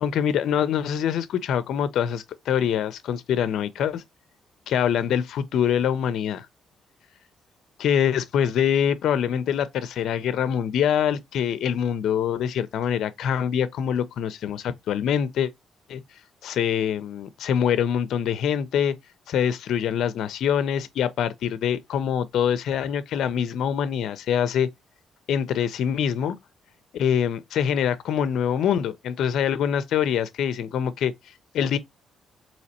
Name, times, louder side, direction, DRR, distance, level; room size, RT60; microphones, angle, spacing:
voice 1, 0.0-4.0 4.7-6.5 7.8-15.5 15.9-16.0 16.4-18.9 19.3-24.7 25.3-26.4 26.9-31.8, left 8 dB, 75° left, 0.4 m, -24 dB
4.1 x 2.8 x 2.7 m
cardioid pair, 90°, 0 cm